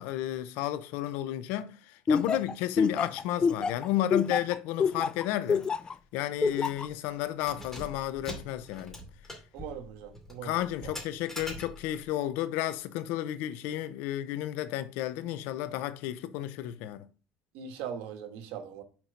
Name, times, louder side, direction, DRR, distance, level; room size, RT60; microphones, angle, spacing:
voice 1, 0.0-5.6 6.1-9.0 10.4-17.1, left 13 dB, 75° left, 0.7 m, -32 dB
Laughter, 2.1-5.9 6.4-6.9, left 5 dB, 25° left, 0.3 m, -26 dB
Keys jangling, 5.5-5.7 6.0-6.1 6.6-6.9 7.3-12.1, left 1 dB, 10° left, 2.5 m, -44 dB
voice 2, 9.5-10.5 10.8-10.9 17.5-18.8, right 8 dB, 75° right, 1.4 m, -40 dB
6.0 x 4.4 x 5.1 m
supercardioid pair, 95°, 3 cm